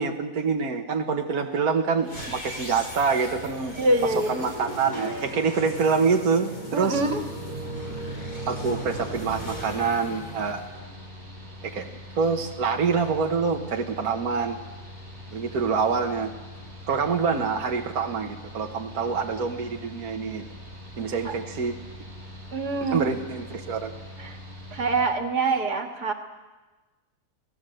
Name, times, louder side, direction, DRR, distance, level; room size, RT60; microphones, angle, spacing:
voice 1, 0.0-3.8 4.0-7.0 8.5-10.6 11.6-11.9 12.2-14.6 15.3-16.3 16.9-20.4 21.0-21.8 22.8-23.9, right 5 dB, 65° right, 3 dB, 1.8 m, -26 dB
sound 1, 2.0-11.2, equal, 75° left, 6.5 m, -37 dB
voice 2, 3.8-4.4 6.7-7.2 21.2-21.3 22.5-23.1 24.2-24.4 24.7-26.1, right 2 dB, 90° right, 4 dB, 2.5 m, -25 dB
Mechanical fan, 6.9-25.1, left 1 dB, 45° right, 5.5 m, -43 dB
27.0 x 17.5 x 7.8 m, 1.2 s
omnidirectional pair, 1.7 m